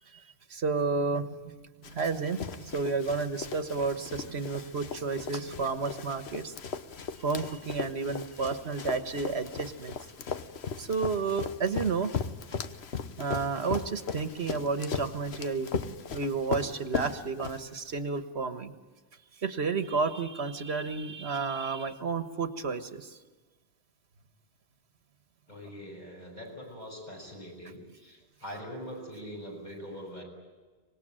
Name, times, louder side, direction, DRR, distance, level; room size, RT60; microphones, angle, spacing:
voice 1, 0.5-6.5 7.2-9.9 10.8-12.2 13.2-15.7 16.1-18.7 19.4-23.1, right 4 dB, 85° right, 10 dB, 1.7 m, -31 dB
Run, 1.8-18.0, left 6 dB, 80° left, 1.3 m, -38 dB
voice 2, 25.5-30.2, equal, 45° left, 0 dB, 7.1 m, -43 dB
25.0 x 20.0 x 9.0 m, 1.3 s
omnidirectional pair, 1.1 m